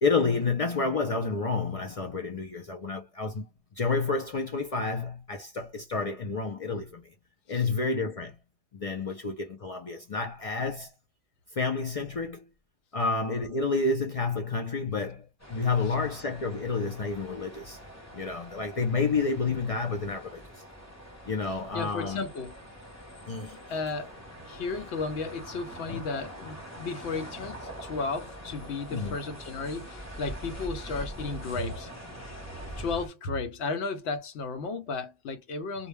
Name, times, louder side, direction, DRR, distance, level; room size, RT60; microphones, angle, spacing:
voice 1, 0.0-3.5 3.8-7.1 7.5-8.4 8.7-10.9 11.5-12.4 12.9-17.8 18.1-20.4 21.3-22.2 23.3-23.6 25.9-26.0 28.9-29.2, left 4 dB, 55° left, 0.4 m, -29 dB
sound 1, 15.4-33.1, equal, 20° left, 0.6 m, -44 dB
voice 2, 21.5-22.5 23.7-24.1 24.5-31.9 32.8-35.9, left 4 dB, 80° left, 0.9 m, -34 dB
2.2 x 2.1 x 3.1 m
omnidirectional pair, 1.1 m